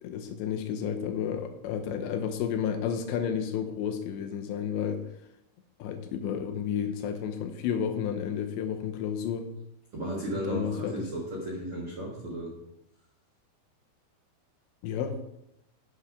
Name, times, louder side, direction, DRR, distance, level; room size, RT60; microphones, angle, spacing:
voice 1, 0.0-5.0 5.8-9.5 10.3-11.1 14.8-15.2, left 8 dB, 80° left, 6 dB, 2.8 m, -31 dB
voice 2, 9.9-12.5, right 1 dB, 85° right, -4 dB, 1.1 m, -34 dB
8.3 x 8.0 x 4.9 m, 0.84 s
omnidirectional pair, 5.5 m